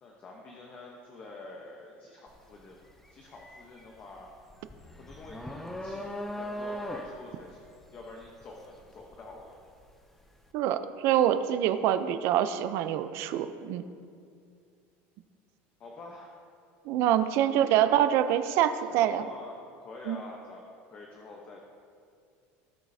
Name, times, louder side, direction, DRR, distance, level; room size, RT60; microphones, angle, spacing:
voice 1, 0.0-2.8 3.1-4.3 4.9-6.1 6.4-7.7 7.9-9.5 15.8-16.4 17.2-17.5 18.7-21.6, left 2 dB, 30° left, 0 dB, 0.9 m, -47 dB
sound 1, 2.3-2.5 2.9-9.9, equal, 5° left, 0.5 m, -39 dB
voice 2, 10.5-13.8 16.9-19.2 20.1-20.2, right 11 dB, 50° right, 11 dB, 0.5 m, -25 dB
18.0 x 7.4 x 2.8 m, 2.3 s
cardioid pair, 165°, 6 cm